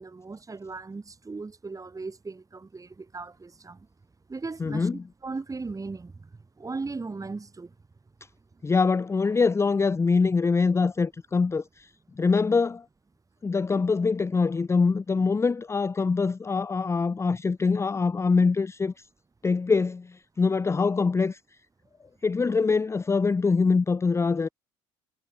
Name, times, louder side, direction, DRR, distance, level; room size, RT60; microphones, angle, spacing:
voice 1, 0.0-3.9 4.3-6.3 6.6-7.7, right 3 dB, 20° right, 7.2 m, -37 dB
voice 2, 4.6-5.0 8.6-11.9 12.2-12.8 13.4-19.1 19.4-21.4 22.2-24.5, left 4 dB, 15° left, 0.6 m, -24 dB
figure-of-eight pair, 55°, 16 cm